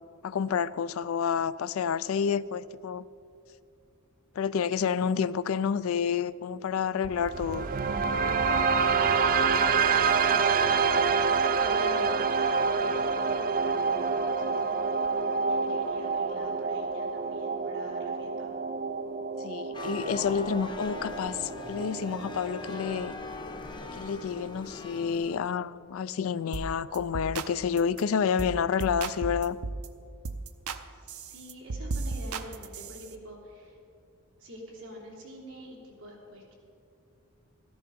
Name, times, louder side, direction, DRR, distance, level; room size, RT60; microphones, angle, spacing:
voice 1, 0.2-3.1 4.3-7.7 19.4-23.1 23.9-29.6, left 7 dB, 70° left, 17 dB, 0.4 m, -29 dB
sound 1, 7.0-23.0, right 5 dB, 40° right, 0.4 m, -27 dB
voice 2, 10.3-10.9 11.6-12.5 12.8-14.8 15.5-18.5 31.0-33.8 34.4-36.5, equal, 65° right, -2 dB, 2.8 m, -45 dB
sound 2, 19.7-25.3, left 3 dB, 20° left, 0.8 m, -40 dB
sound 3, 26.5-26.7 26.9-27.5 27.8-28.0 28.4-28.5 28.8-29.9 30.2-30.8 31.1-33.1, right 3 dB, 85° right, 0.6 m, -35 dB
13.5 x 10.5 x 5.3 m, 2.3 s
head